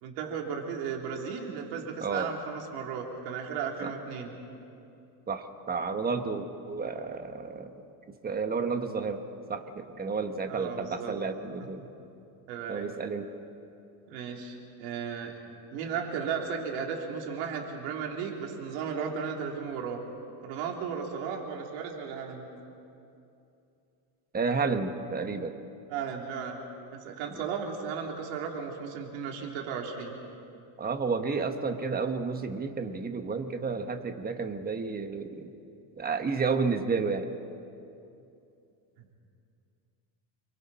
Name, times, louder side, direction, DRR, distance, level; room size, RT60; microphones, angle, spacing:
voice 1, 0.0-4.3 10.5-11.1 12.5-12.9 14.1-15.4 15.7-20.0 20.4-22.5 25.9-26.6 26.9-30.2 39.0-39.2, right 6 dB, 85° right, 0 dB, 3.5 m, -35 dB
voice 2, 2.0-2.3 3.8-3.9 5.3-7.7 8.2-9.2 9.5-11.9 12.7-13.3 24.3-25.6 27.3-27.4 30.8-35.5 36.0-37.3, right 4 dB, 20° right, 7 dB, 1.3 m, -31 dB
29.5 x 23.0 x 4.3 m, 2.7 s
cardioid pair, 140°, 46 cm